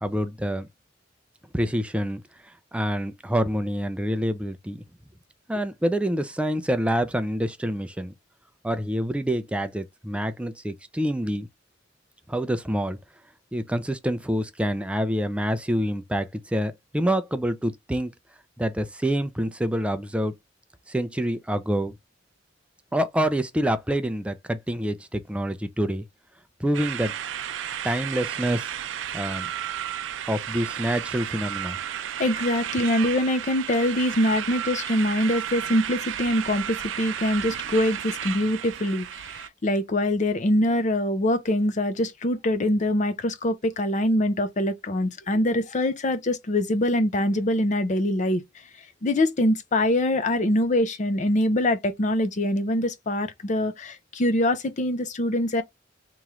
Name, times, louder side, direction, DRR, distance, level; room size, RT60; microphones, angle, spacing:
voice 1, 0.0-0.7 1.5-4.8 5.5-8.1 8.6-11.5 12.3-13.0 13.5-18.1 18.6-20.3 20.9-21.9 22.9-26.0 26.6-27.1 27.8-28.7 29.1-29.5 30.3-31.8, equal, 5° right, 0.4 m, -27 dB
sound 1, 26.7-39.5, right 10 dB, 80° right, 0.4 m, -33 dB
voice 2, 32.2-48.4 49.0-55.6, left 1 dB, 40° left, 0.5 m, -24 dB
3.0 x 3.0 x 3.6 m
head